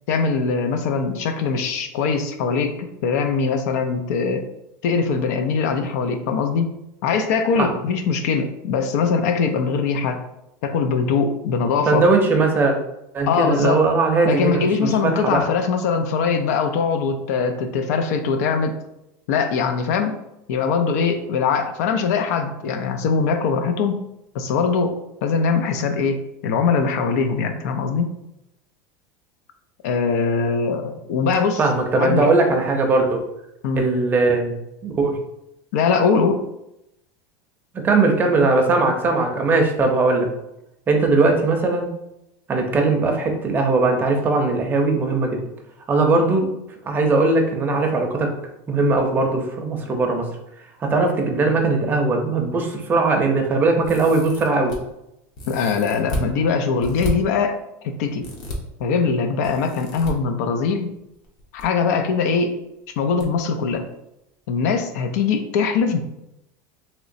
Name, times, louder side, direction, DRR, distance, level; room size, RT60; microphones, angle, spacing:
voice 1, 0.1-4.5 4.8-6.7 7.0-10.2 10.6-12.1 13.3-13.8 14.2-18.7 19.3-20.2 20.5-24.0 24.3-28.1 29.8-31.6 32.0-32.3 33.6-33.9 35.7-36.4 55.5-57.6 57.8-58.3 58.8-60.9 61.5-62.6 63.0-63.8 64.5-66.0, left 5 dB, 75° left, 7 dB, 0.4 m, -22 dB
voice 2, 11.9-12.7 13.1-15.4 31.6-33.2 33.7-34.5 34.8-35.2 37.8-40.3 40.9-41.9 42.5-45.4 45.9-46.5 46.9-48.3 48.7-50.3 50.8-54.7, right 3 dB, 20° right, 3 dB, 0.5 m, -19 dB
sound 1, 53.8-54.8 55.4-56.3 56.8-57.1 58.2-58.6 59.4-60.1 61.2-61.7 61.9-62.0 63.2-63.3 63.7-63.8, equal, 50° left, 0.8 m, -31 dB
3.1 x 2.9 x 2.6 m, 0.85 s
supercardioid pair, 145°, 9 cm